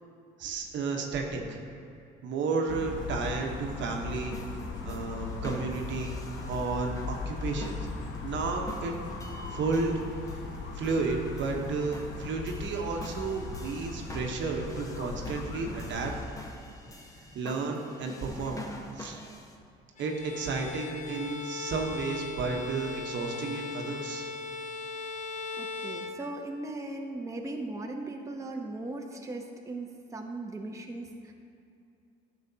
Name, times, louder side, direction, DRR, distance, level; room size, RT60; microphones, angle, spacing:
voice 1, 0.4-1.6 2.2-4.4 4.8-6.2 6.5-7.8 8.2-8.9 9.5-10.0 10.3-10.4 10.7-16.1 17.3-18.6 18.9-19.2 20.0-24.3, right 4 dB, 65° right, 2 dB, 1.1 m, -32 dB
sound 1, 2.7-16.2, left 3 dB, 65° left, 1.0 m, -38 dB
sound 2, 4.1-19.6, left 1 dB, 15° left, 1.0 m, -47 dB
Bowed string instrument, 20.0-26.7, left 4 dB, 35° left, 0.6 m, -39 dB
voice 2, 25.6-31.3, right 2 dB, 15° right, 1 dB, 0.8 m, -38 dB
10.5 x 6.7 x 2.8 m, 2.6 s
supercardioid pair, 75°, 21 cm